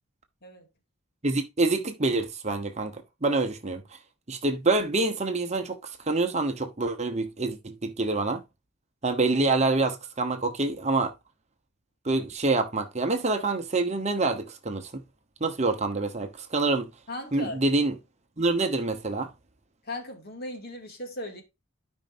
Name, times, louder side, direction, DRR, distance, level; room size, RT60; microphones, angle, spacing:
voice 1, 1.2-3.8 4.3-8.4 9.0-11.1 12.0-15.0 15.4-16.9 17.3-17.9 18.4-19.3, right 3 dB, 30° right, 1.0 m, -26 dB
voice 2, 17.1-17.6 19.8-21.4, left 1 dB, 45° left, 2.4 m, -37 dB
13.0 x 5.4 x 2.7 m
head